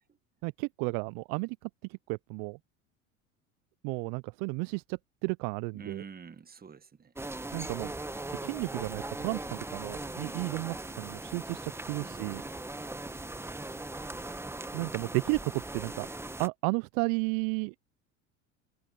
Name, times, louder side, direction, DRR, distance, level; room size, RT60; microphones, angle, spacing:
voice 1, 0.4-2.6 3.8-6.0 7.5-7.9 8.4-12.4 14.7-16.1 16.4-17.7, right 33 dB, 55° right, 0.5 m, -33 dB
voice 2, 5.7-7.1 9.9-10.6 12.0-12.6 13.1-13.6, right 6 dB, 20° right, 1.6 m, -49 dB
sound 1, 7.2-16.5, right 2 dB, 5° right, 1.0 m, -39 dB
hypercardioid pair, 85°, 41 cm